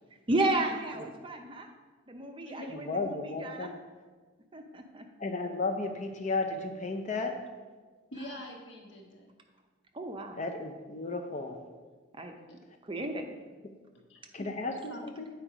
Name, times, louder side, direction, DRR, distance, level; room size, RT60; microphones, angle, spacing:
voice 1, 0.3-1.7 2.1-3.7 4.5-5.0 8.2-8.3 9.9-10.4 12.1-12.3 12.8-13.2, right 2 dB, 25° right, 4 dB, 0.5 m, -33 dB
voice 2, 2.7-3.8 5.2-7.4 10.3-11.6 13.6-13.7 14.3-15.3, left 3 dB, 35° left, 5 dB, 0.6 m, -34 dB
voice 3, 8.1-9.3 12.5-12.6 14.1-15.1, left 1 dB, 65° left, 0 dB, 1.3 m, -45 dB
8.5 x 4.5 x 4.9 m, 1.4 s
head